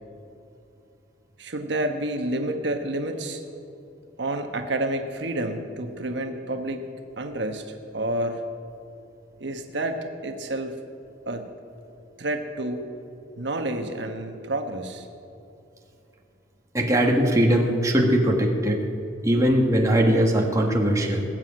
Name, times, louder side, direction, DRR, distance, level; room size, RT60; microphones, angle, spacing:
voice 1, 1.4-3.4 4.2-6.9 7.2-8.4 9.4-10.8 11.2-11.5 12.2-12.9 13.4-15.1, right 1 dB, 65° right, 5 dB, 1.2 m, -29 dB
voice 2, 16.7-18.8 19.2-21.2, equal, 15° right, 0 dB, 1.6 m, -20 dB
20.0 x 7.8 x 8.7 m, 2.8 s
head